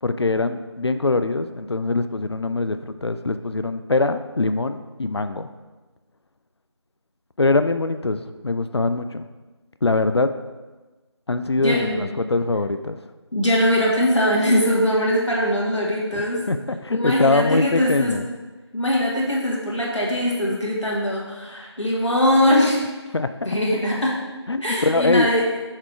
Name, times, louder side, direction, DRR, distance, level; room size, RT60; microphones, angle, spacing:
voice 1, 0.0-5.5 7.4-9.3 9.8-10.3 11.3-13.0 16.1-18.3 23.1-23.3 24.5-25.3, left 3 dB, 65° left, 10 dB, 0.4 m, -23 dB
voice 2, 11.6-12.1 13.3-16.4 16.9-18.1 18.7-22.8 23.4-24.1 24.6-25.4, left 1 dB, 90° left, -4 dB, 2.0 m, -21 dB
6.5 x 3.8 x 4.5 m, 1.2 s
figure-of-eight pair, 175°, 15 cm